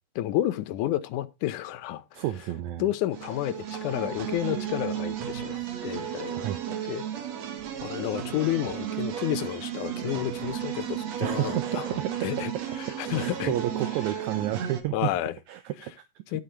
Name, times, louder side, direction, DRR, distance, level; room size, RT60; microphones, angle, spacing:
voice 1, 0.2-2.2 2.8-6.5 6.9-7.1 7.8-11.9 12.2-12.5 13.0-13.5 14.9-15.4 16.3-16.4, left 13 dB, 75° left, 2.2 m, -30 dB
voice 2, 2.1-2.9 6.3-6.6 11.2-12.6 13.1-15.1 15.5-16.2, right 13 dB, 75° right, 1.9 m, -31 dB
sound 1, 3.1-14.8, right 10 dB, 60° right, 2.6 m, -34 dB
12.0 x 8.1 x 3.3 m
omnidirectional pair, 3.7 m